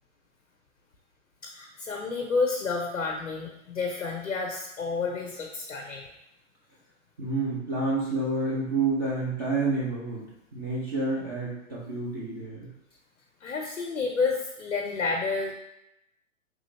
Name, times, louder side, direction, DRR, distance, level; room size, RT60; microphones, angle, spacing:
voice 1, 1.4-6.1 13.4-15.5, left 4 dB, 85° left, 0 dB, 0.6 m, -30 dB
voice 2, 7.2-10.2 10.5-12.7, right 3 dB, 20° right, -8 dB, 0.3 m, -29 dB
3.0 x 2.5 x 3.0 m, 0.82 s
figure-of-eight pair, 115°, 39 cm